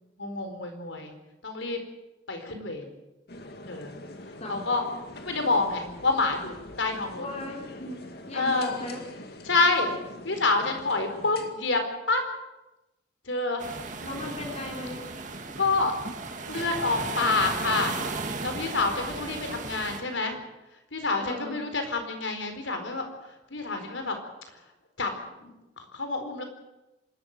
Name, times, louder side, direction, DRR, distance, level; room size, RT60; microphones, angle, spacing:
voice 1, 0.2-1.1 1.4-1.8 2.3-2.9 3.7-3.9 4.3-4.9 5.2-7.3 8.3-8.7 9.4-10.0 10.2-12.3 13.2-13.6 15.6-16.1 16.5-18.0 18.4-20.4 20.9-24.2 24.5-24.6 25.0-26.4, left 3 dB, 80° left, 6 dB, 4.4 m, -28 dB
sound 1, 3.3-11.5, left 1 dB, 55° left, 2.3 m, -44 dB
voice 2, 7.2-8.0 8.3-9.0 14.0-15.1 21.2-21.6, left 2 dB, 35° left, 0 dB, 3.6 m, -36 dB
sound 2, 13.6-20.0, right 3 dB, 40° right, 2.4 m, -35 dB
27.0 x 13.5 x 9.1 m, 0.98 s
head